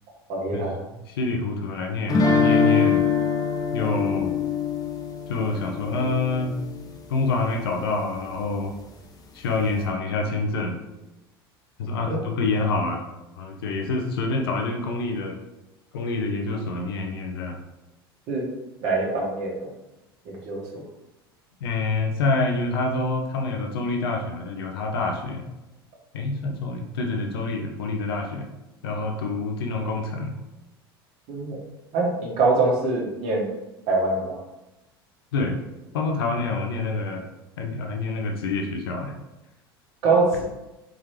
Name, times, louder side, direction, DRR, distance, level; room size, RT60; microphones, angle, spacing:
voice 1, 0.3-0.8 12.0-12.2 18.3-18.4 18.8-19.7 20.2-20.8 31.3-31.6 31.9-33.5 33.9-34.4 40.0-40.4, right 3 dB, 55° right, -3 dB, 1.5 m, -24 dB
voice 2, 1.1-3.0 3.7-4.3 5.3-6.6 7.1-8.7 9.3-10.8 11.8-13.0 13.4-15.4 15.9-17.6 21.6-25.4 26.1-28.5 28.8-30.3 35.3-35.6 35.9-37.2 37.6-39.1, left 3 dB, 70° left, 2 dB, 0.7 m, -27 dB
sound 1, 2.1-7.0, left 5 dB, 30° left, 0.7 m, -23 dB
4.2 x 3.8 x 3.3 m, 0.99 s
figure-of-eight pair, 75°, 13 cm